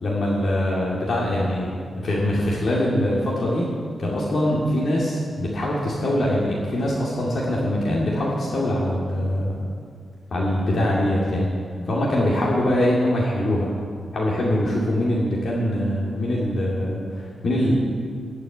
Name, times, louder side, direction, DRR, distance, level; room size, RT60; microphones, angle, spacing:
voice 1, 0.0-1.7 2.0-3.7 4.0-9.6 10.3-11.5 11.9-13.7 14.1-17.7, left 1 dB, 55° left, -5 dB, 2.5 m, -23 dB
15.5 x 6.5 x 9.9 m, 2.1 s
wide cardioid pair, 140°, 0 cm